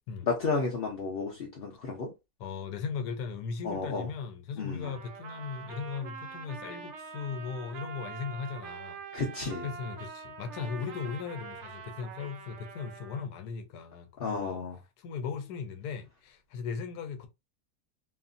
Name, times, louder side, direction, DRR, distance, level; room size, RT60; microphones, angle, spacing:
voice 1, 0.3-2.1 3.6-4.1 4.6-4.9 9.1-9.7 14.2-14.7, left 4 dB, 50° left, 0.7 m, -32 dB
voice 2, 2.4-9.0 9.6-14.6 15.0-17.3, left 6 dB, 80° left, 1.1 m, -38 dB
Trumpet, 4.8-13.2, right 6 dB, 60° right, 0.8 m, -44 dB
2.9 x 2.5 x 2.4 m
omnidirectional pair, 1.7 m